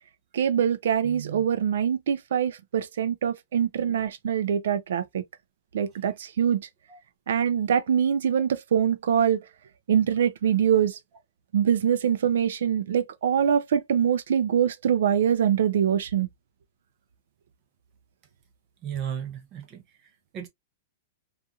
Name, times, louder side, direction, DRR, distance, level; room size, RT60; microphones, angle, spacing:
voice 1, 0.3-5.2 5.7-6.7 7.3-9.4 9.9-11.0 11.5-16.3, right 8 dB, 70° right, 0.4 m, -24 dB
voice 2, 18.8-19.8 20.3-20.5, right 8 dB, 25° right, 0.7 m, -34 dB
2.7 x 2.4 x 2.4 m
supercardioid pair, 170°, 0 cm